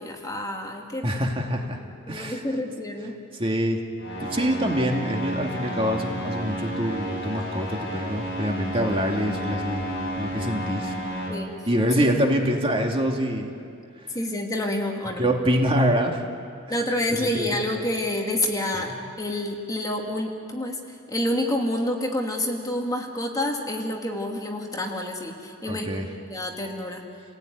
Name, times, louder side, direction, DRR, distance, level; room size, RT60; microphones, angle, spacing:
voice 1, 0.0-1.1 2.1-3.2 11.3-11.5 12.0-12.1 14.1-15.3 16.7-20.8 21.1-25.9 26.3-27.0, left 1 dB, 15° left, 1 dB, 2.5 m, -28 dB
voice 2, 1.0-1.8 2.1-2.4 3.4-3.8 4.2-9.9 10.2-11.0 11.7-13.5 15.2-16.2 17.1-17.7 18.7-18.8 25.7-26.1, equal, 25° right, 2 dB, 2.4 m, -25 dB
sound 1, 4.0-11.3, equal, 55° left, 7.1 m, -31 dB
29.5 x 17.5 x 9.5 m, 2.4 s
head